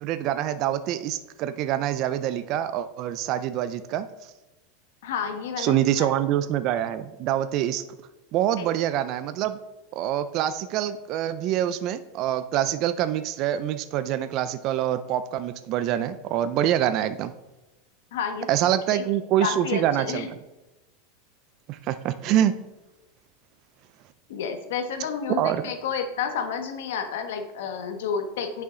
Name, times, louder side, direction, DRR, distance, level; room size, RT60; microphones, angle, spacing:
voice 1, 0.0-4.1 5.6-7.8 8.3-9.6 10.0-17.3 18.5-20.3 21.7-22.6 25.4-25.6, right 11 dB, 40° right, 11 dB, 0.4 m, -25 dB
voice 2, 5.0-6.1 8.6-8.7 18.1-18.5 18.9-19.0 19.4-20.3 24.3-28.6, left 6 dB, 80° left, 6 dB, 1.2 m, -30 dB
9.5 x 5.6 x 3.8 m, 1.0 s
supercardioid pair, 150°, 0 cm